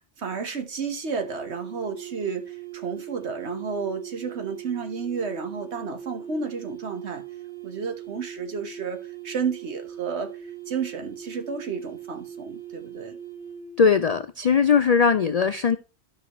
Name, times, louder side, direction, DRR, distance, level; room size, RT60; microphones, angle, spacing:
voice 1, 0.0-7.2 7.6-13.2, right 5 dB, 65° right, 1.5 m, -32 dB
sound 1, 1.1-13.9, right 10 dB, 25° right, 1.0 m, -40 dB
voice 2, 13.8-15.8, left 6 dB, 65° left, 0.3 m, -20 dB
12.5 x 5.6 x 3.1 m
omnidirectional pair, 1.2 m